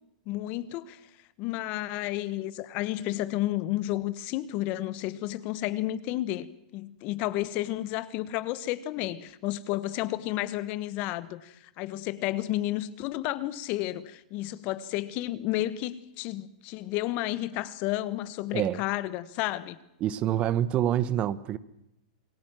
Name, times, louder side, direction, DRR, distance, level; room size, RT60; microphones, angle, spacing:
voice 1, 0.3-1.0 1.4-19.8, left 15 dB, 40° left, 1.2 m, -31 dB
voice 2, 20.0-21.6, right 11 dB, 30° right, 0.9 m, -26 dB
28.0 x 19.0 x 7.6 m
hypercardioid pair, 145°, 4 cm